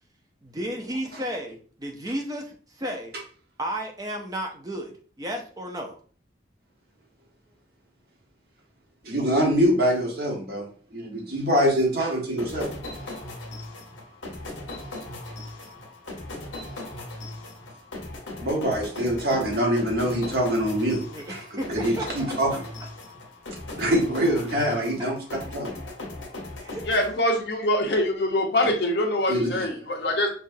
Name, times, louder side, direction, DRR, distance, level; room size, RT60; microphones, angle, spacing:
voice 1, 0.4-3.1 3.6-6.0 21.1-22.3 26.6-26.9, right 1 dB, 20° right, 2 dB, 0.5 m, -33 dB
voice 2, 9.0-12.7 18.4-21.0 21.3-21.4 21.7-22.6 23.8-25.1 25.5-25.7 29.3-29.7, equal, 50° right, 0 dB, 1.2 m, -24 dB
sound 1, 12.4-27.7, left 2 dB, 80° left, 1.1 m, -38 dB
voice 3, 26.9-30.3, left 1 dB, 60° left, 2 dB, 0.9 m, -24 dB
5.6 x 2.4 x 2.6 m, 0.42 s
head